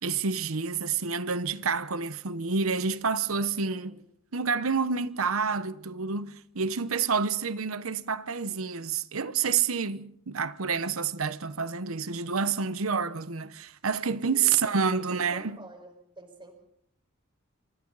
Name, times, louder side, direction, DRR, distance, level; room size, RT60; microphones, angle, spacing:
voice 1, 0.0-4.0 4.3-15.6, right 5 dB, 80° right, 0.9 m, -28 dB
voice 2, 3.6-4.0 14.2-16.5, right 2 dB, 25° right, 5.0 m, -48 dB
27.5 x 25.0 x 4.1 m
head